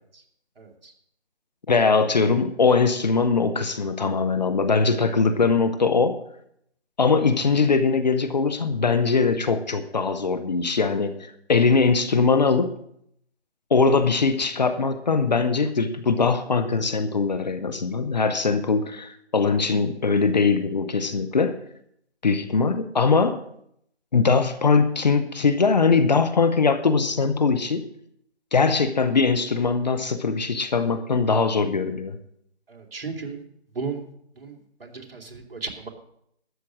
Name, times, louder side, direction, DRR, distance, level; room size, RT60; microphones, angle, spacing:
voice 1, 0.6-0.9 32.7-33.4 33.7-34.0 34.4-35.9, right 4 dB, 60° right, 2 dB, 2.9 m, -35 dB
voice 2, 1.7-6.2 7.0-12.7 13.7-21.6 22.2-23.4 24.1-27.8 28.5-32.2, left 4 dB, 40° left, 11 dB, 0.9 m, -21 dB
13.0 x 8.4 x 6.2 m, 0.71 s
figure-of-eight pair, 160°, 33 cm